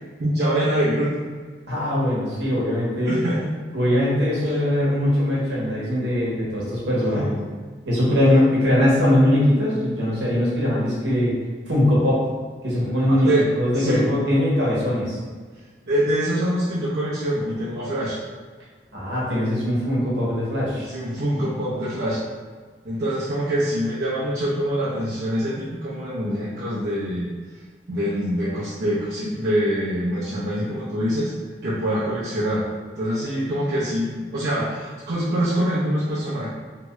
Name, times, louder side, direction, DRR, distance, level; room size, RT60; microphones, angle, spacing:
voice 1, 0.2-1.1 3.0-3.5 4.4-4.5 6.9-7.3 13.1-14.0 15.9-18.2 20.9-22.2 22.8-27.3 27.9-31.3 31.6-32.7 33.0-36.5, equal, 70° right, -11 dB, 0.7 m, -24 dB
voice 2, 1.7-3.2 3.7-7.3 7.9-11.4 11.7-12.2 12.6-13.3 13.5-15.2 18.9-20.9, left 1 dB, 90° right, -7 dB, 1.1 m, -21 dB
2.9 x 2.3 x 3.0 m, 1.5 s
head